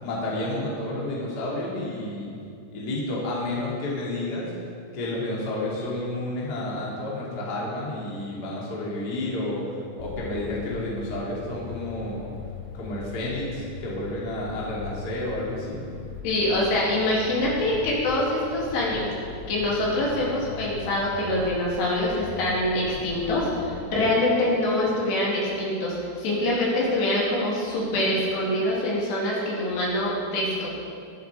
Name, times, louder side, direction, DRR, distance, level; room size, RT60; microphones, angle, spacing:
voice 1, 0.0-2.3 2.7-4.5 4.9-9.6 10.0-12.3 12.7-15.8, left 1 dB, 30° left, -5 dB, 2.2 m, -30 dB
sound 1, 10.0-23.9, left 6 dB, 85° left, 2.3 m, -40 dB
voice 2, 16.2-19.1 19.5-30.7, left 1 dB, 65° left, -5 dB, 4.5 m, -25 dB
21.5 x 7.7 x 5.0 m, 2.4 s
omnidirectional pair, 5.5 m